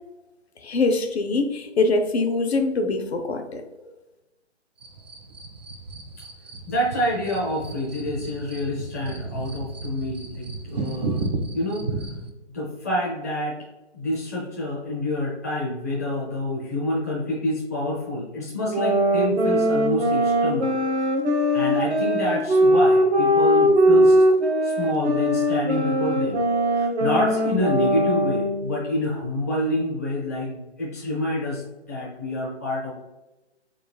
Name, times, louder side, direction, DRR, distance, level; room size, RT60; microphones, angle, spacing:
voice 1, 0.6-3.7, left 3 dB, 65° left, 5 dB, 0.6 m, -23 dB
sound 1, 4.8-12.3, right 3 dB, 40° right, 0.5 m, -33 dB
voice 2, 6.7-11.2 11.5-11.9 12.5-13.6 13.9-20.7 21.5-24.2 24.6-26.4 26.7-32.9, left 1 dB, 15° left, -7 dB, 0.4 m, -27 dB
sound 2, 18.7-28.7, equal, 65° right, 0.8 m, -20 dB
3.9 x 3.8 x 2.3 m, 1.1 s
figure-of-eight pair, 145°, 35 cm